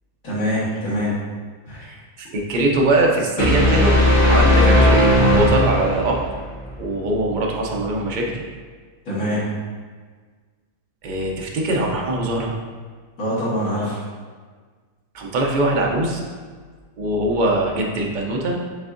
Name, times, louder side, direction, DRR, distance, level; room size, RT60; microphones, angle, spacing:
voice 1, 0.2-1.1 1.6-1.9 9.1-9.4 13.2-14.0, equal, 75° left, -10 dB, 1.9 m, -24 dB
voice 2, 1.8-4.0 4.3-6.2 6.8-8.4 11.0-12.5 15.1-16.2 17.0-18.6, right 1 dB, 55° right, 0 dB, 0.5 m, -22 dB
sound 1, 3.4-6.3, left 1 dB, 40° left, 1.5 m, -16 dB
5.5 x 3.5 x 2.5 m, 1.5 s
omnidirectional pair, 1.5 m